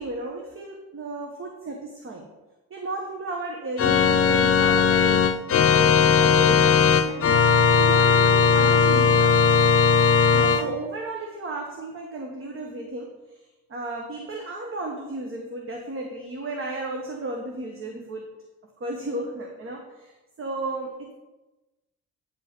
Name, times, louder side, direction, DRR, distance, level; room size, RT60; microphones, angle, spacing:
voice 1, 0.0-2.3 2.7-9.4 10.3-18.3 18.8-21.1, right 2 dB, 45° right, 1 dB, 1.3 m, -34 dB
Organ, 3.8-10.6, left 6 dB, 50° left, 0.7 m, -18 dB
9.1 x 5.4 x 5.4 m, 1.1 s
cardioid pair, 90°, 30 cm